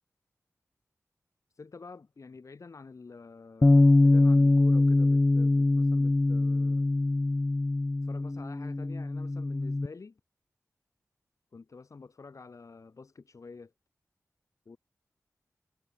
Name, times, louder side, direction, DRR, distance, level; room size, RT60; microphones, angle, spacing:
voice 1, 1.6-6.9 8.0-10.2 11.5-13.7 14.7-14.8, left 4 dB, 65° left, 7.8 m, -48 dB
Bass guitar, 3.6-9.9, left 2 dB, 25° left, 0.6 m, -23 dB
wide cardioid pair, 60°, 6 cm